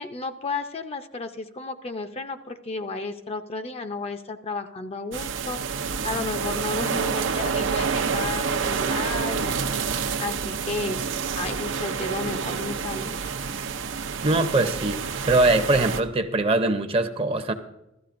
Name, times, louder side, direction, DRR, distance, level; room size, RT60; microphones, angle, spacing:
voice 1, 0.0-11.0 11.3-13.3, left 3 dB, 30° left, 8 dB, 0.5 m, -33 dB
sound 1, 5.1-16.0, right 5 dB, 90° right, 0.6 m, -28 dB
voice 2, 14.2-15.0 15.3-17.5, right 2 dB, 30° right, 8 dB, 0.6 m, -22 dB
15.5 x 13.0 x 2.5 m, 0.88 s
head